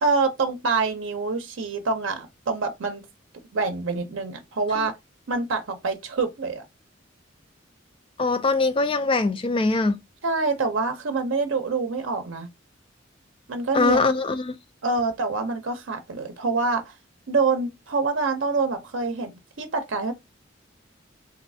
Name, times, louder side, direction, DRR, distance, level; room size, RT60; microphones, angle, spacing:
voice 1, 0.0-3.0 3.5-4.9 5.3-6.6 10.2-12.5 13.5-14.0 14.8-16.9 17.3-20.1, right 4 dB, 75° right, 0.6 m, -26 dB
voice 2, 8.2-10.0 13.7-14.5, left 3 dB, 25° left, 0.4 m, -22 dB
3.1 x 2.6 x 2.6 m
head